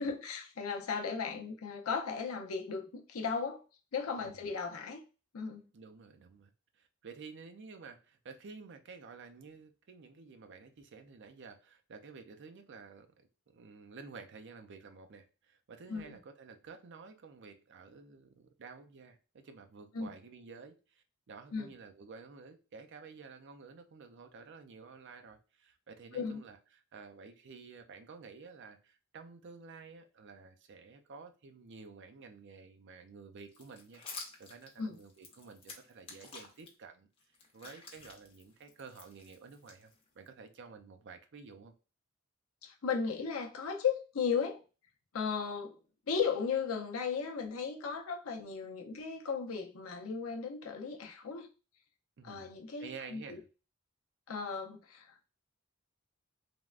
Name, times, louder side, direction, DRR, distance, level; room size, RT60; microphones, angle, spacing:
voice 1, 0.0-3.6 3.9-5.0 5.3-5.6 15.9-16.2 19.9-20.1 21.5-21.7 26.1-26.4 34.8-35.0 42.6-44.6 45.1-45.8 46.1-51.5 52.2-53.4 54.3-55.3, left 5 dB, 80° left, 0.6 m, -36 dB
voice 2, 5.7-13.3 13.5-37.1 37.5-41.7 48.8-48.9 52.2-53.5, right 5 dB, 55° right, 0.4 m, -52 dB
sound 1, 33.5-36.7 37.2-40.3, left 4 dB, 25° left, 0.6 m, -50 dB
3.4 x 2.1 x 2.4 m
head